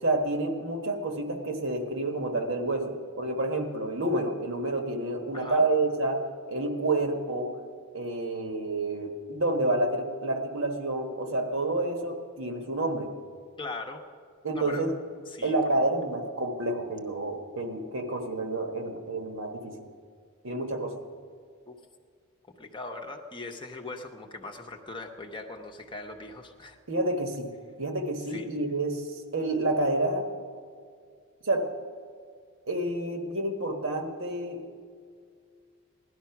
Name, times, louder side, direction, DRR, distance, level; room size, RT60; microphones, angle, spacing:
voice 1, 0.0-6.2 6.5-7.5 7.9-13.1 14.4-14.9 15.4-19.7 20.4-21.0 26.9-29.0 29.3-30.3 31.4-31.7 32.7-34.6, right 2 dB, 60° right, 5 dB, 1.4 m, -29 dB
voice 2, 5.3-5.6 13.6-14.0 14.5-14.9 15.3-15.5 21.7-21.8 22.6-26.8 28.3-28.5, left 2 dB, 20° left, 3 dB, 0.9 m, -40 dB
17.0 x 11.5 x 5.9 m, 2.1 s
head